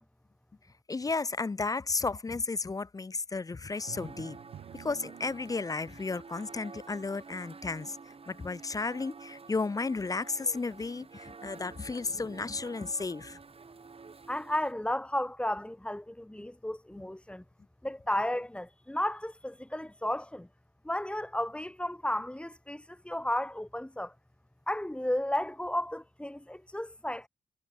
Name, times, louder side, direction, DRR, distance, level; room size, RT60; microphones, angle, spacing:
voice 1, 0.9-4.4 4.7-13.4, left 3 dB, 25° left, 0.4 m, -33 dB
sound 1, 3.7-14.7, right 4 dB, 40° right, 1.2 m, -50 dB
Drum, 3.9-5.9, right 10 dB, 90° right, 1.7 m, -49 dB
voice 2, 14.3-17.4 17.8-20.5 20.8-24.1 24.7-27.3, left 1 dB, 5° left, 1.0 m, -33 dB
cardioid pair, 75°, 16 cm